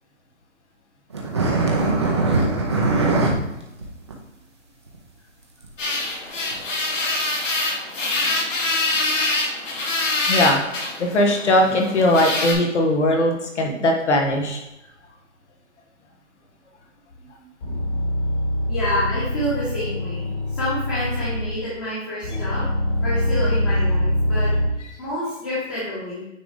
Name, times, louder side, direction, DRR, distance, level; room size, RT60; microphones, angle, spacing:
sound 1, 1.1-3.3 3.7-3.8 4.1-4.2 4.9-5.0 5.6-5.7 6.5-6.6, right 3 dB, 20° right, 0.6 m, -20 dB
sound 2, 5.8-12.5, left 2 dB, 80° left, 2.1 m, -25 dB
voice 1, 10.3-10.6 11.0-14.6 17.7-17.8, left 1 dB, 65° left, 1 dB, 1.4 m, -19 dB
sound 3, 17.1-17.2 17.6-21.7 22.2-24.7, left 1 dB, 30° left, 2.1 m, -24 dB
voice 2, 18.7-22.6 23.0-24.5 25.0-26.3, left 1 dB, 15° left, -9 dB, 1.3 m, -28 dB
9.3 x 3.9 x 3.5 m, 0.91 s
hypercardioid pair, 170°, 38 cm